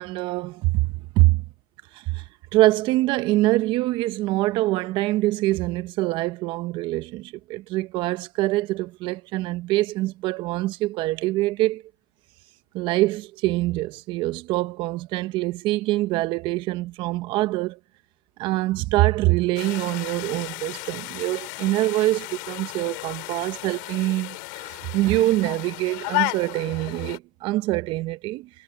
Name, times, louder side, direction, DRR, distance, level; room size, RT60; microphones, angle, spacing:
voice 1, 0.0-1.4 1.9-2.2 2.5-11.8 12.7-17.8 18.4-28.5, right 18 dB, 45° right, 1.0 m, -24 dB
sound 1, 19.6-27.2, left 31 dB, 55° left, 2.8 m, -33 dB
hypercardioid pair, 120°, 12 cm